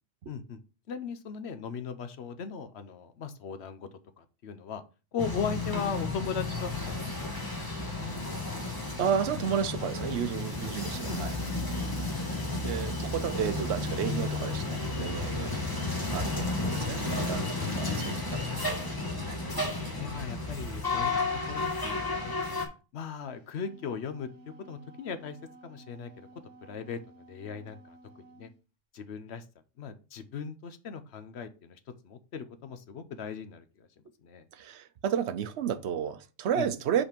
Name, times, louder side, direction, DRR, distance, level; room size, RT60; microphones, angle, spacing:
voice 1, 0.3-0.6 0.9-3.9 4.2-4.8 5.1-7.3 11.1-11.3 12.1-12.6 17.5-17.8 19.4-21.1 21.5-22.4 22.9-24.3 24.7-25.4 25.6-26.3 26.6-28.0 28.4-28.5 28.9-29.4 29.8-31.8 32.0-33.9 34.2-34.5 36.5-36.7, left 6 dB, 60° left, 0.9 m, -38 dB
sound 1, 5.2-22.7, left 3 dB, 15° left, 1.4 m, -32 dB
voice 2, 9.0-11.3 12.5-15.5 16.1-18.7 34.5-37.0, right 8 dB, 65° right, 0.9 m, -32 dB
Wind instrument woodwind instrument, 23.3-28.5, right 2 dB, 40° right, 2.3 m, -54 dB
5.5 x 4.2 x 5.2 m
omnidirectional pair, 1.3 m